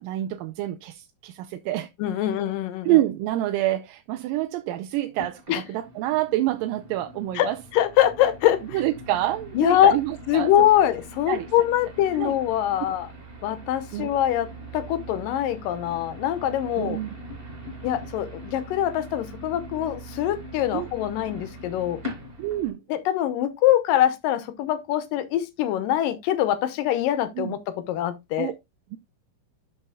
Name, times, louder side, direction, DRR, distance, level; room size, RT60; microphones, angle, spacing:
voice 1, 0.0-1.9 2.8-7.6 8.6-10.5 11.3-11.5 12.1-12.4 13.9-14.1 16.8-17.1 20.7-20.9 22.4-22.8 27.4-27.5 28.4-28.5 28.9-29.0, right 15 dB, 85° right, 2.3 m, -27 dB
voice 2, 2.0-2.9 5.5-5.6 7.4-8.6 9.6-10.0 10.3-13.1 13.4-14.5 14.7-17.0 17.8-22.0 22.9-28.5, left 12 dB, 80° left, 2.5 m, -23 dB
sound 1, 5.1-22.7, equal, 15° right, 3.3 m, -41 dB
12.0 x 5.6 x 2.4 m
omnidirectional pair, 4.0 m